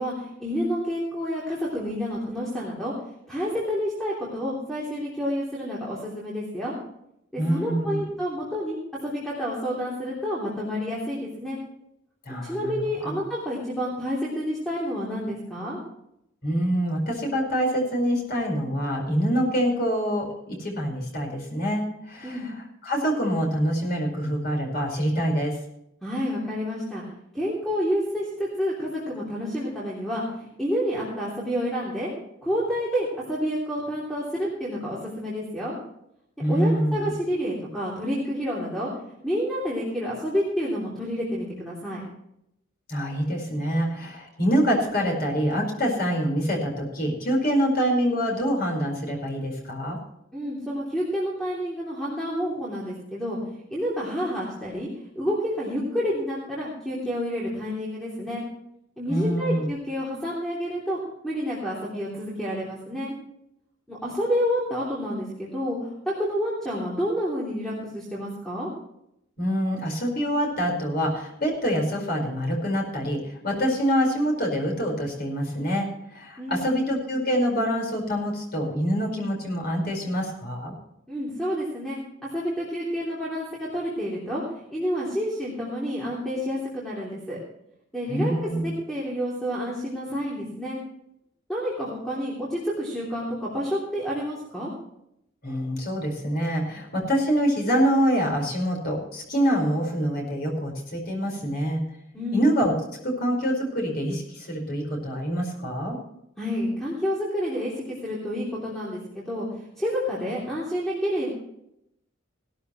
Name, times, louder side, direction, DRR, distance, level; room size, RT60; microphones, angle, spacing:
voice 1, 0.0-2.9 3.3-6.7 7.3-11.6 12.4-15.8 22.2-22.5 26.0-27.0 27.3-32.1 32.4-35.8 36.5-42.0 50.3-53.4 53.7-54.9 55.1-58.4 59.0-61.0 61.2-63.1 63.9-68.7 76.4-76.8 81.1-84.4 84.7-87.4 87.9-90.8 91.5-94.7 102.1-102.4 106.4-109.5 109.8-111.3, equal, ahead, -7 dB, 3.1 m, -29 dB
voice 2, 7.4-8.0 12.2-13.2 16.4-22.5 22.8-25.6 36.4-37.1 42.9-50.0 59.1-59.6 69.4-80.8 88.1-88.7 95.4-101.8 102.3-102.7 103.0-106.0, equal, 50° left, 1 dB, 5.0 m, -25 dB
17.5 x 13.0 x 3.2 m, 0.79 s
head